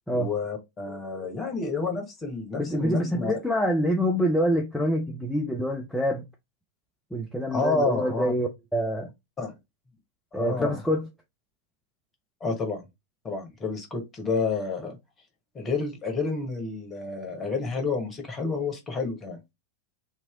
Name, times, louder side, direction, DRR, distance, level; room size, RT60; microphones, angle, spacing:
voice 1, 0.1-3.3 7.5-8.3 9.4-9.5 10.3-10.8 12.4-12.8 13.2-14.9 15.5-19.4, left 4 dB, 20° left, 1.3 m, -29 dB
voice 2, 2.5-6.3 7.1-9.1 10.3-11.1, equal, ahead, 0.5 m, -26 dB
3.0 x 2.7 x 3.7 m
figure-of-eight pair, 90°, 0 cm